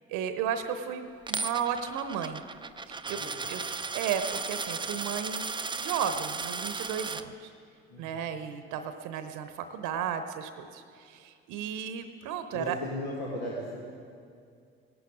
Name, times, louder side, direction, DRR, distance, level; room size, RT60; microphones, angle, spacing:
voice 1, 0.1-2.4 2.9-5.5 5.8-7.5 8.0-12.8, right 8 dB, 65° right, 8 dB, 0.8 m, -34 dB
Coin (dropping), 1.3-7.2, right 4 dB, 15° right, 0.5 m, -35 dB
voice 2, 7.9-8.3 12.5-13.8, left 1 dB, 80° left, -5 dB, 1.7 m, -37 dB
17.0 x 11.0 x 4.9 m, 2.3 s
figure-of-eight pair, 45°, 32 cm